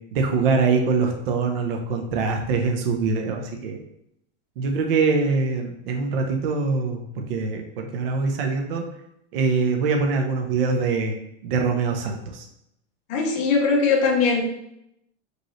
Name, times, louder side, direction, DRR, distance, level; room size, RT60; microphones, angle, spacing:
voice 1, 0.1-3.8 4.6-8.9 9.3-11.2 11.4-12.5, right 4 dB, 50° right, 3 dB, 0.7 m, -23 dB
voice 2, 13.1-14.5, left 4 dB, 20° left, 0 dB, 0.5 m, -20 dB
4.9 x 3.1 x 3.0 m, 0.80 s
supercardioid pair, 175°, 37 cm